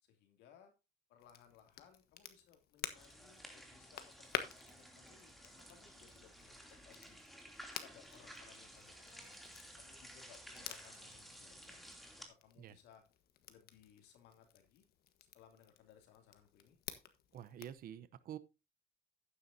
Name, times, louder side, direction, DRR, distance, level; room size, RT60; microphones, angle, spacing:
voice 1, 0.0-0.7 1.1-6.5 6.8-7.2 7.8-9.4 9.7-11.8 12.3-13.0 13.5-14.8 15.3-16.8, left 8 dB, 85° left, 2.7 m, -64 dB
Crackle, 1.2-17.8, left 10 dB, 65° left, 1.5 m, -51 dB
sound 1, 2.9-12.3, equal, ahead, 2.9 m, -55 dB
voice 2, 17.3-18.4, right 10 dB, 60° right, 0.9 m, -48 dB
11.0 x 9.7 x 2.8 m
cardioid pair, 110°, 17 cm